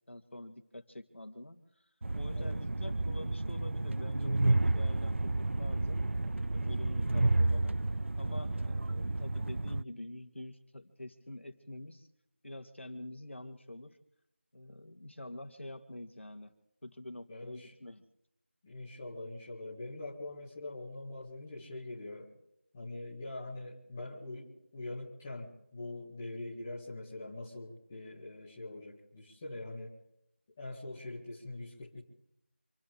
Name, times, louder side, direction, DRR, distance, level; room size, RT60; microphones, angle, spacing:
voice 1, 0.1-1.6 2.1-6.0 6.5-7.7 8.2-12.1 12.4-14.0 14.5-16.5 16.8-18.0, left 1 dB, 75° left, 7 dB, 2.7 m, -46 dB
Train, 2.0-9.8, right 2 dB, 80° right, 0.5 m, -31 dB
voice 2, 17.3-17.7 18.6-22.3 22.7-29.9 30.6-32.0, left 2 dB, 10° left, -5 dB, 2.0 m, -43 dB
27.5 x 9.8 x 5.2 m, 0.80 s
figure-of-eight pair, 175°, 7 cm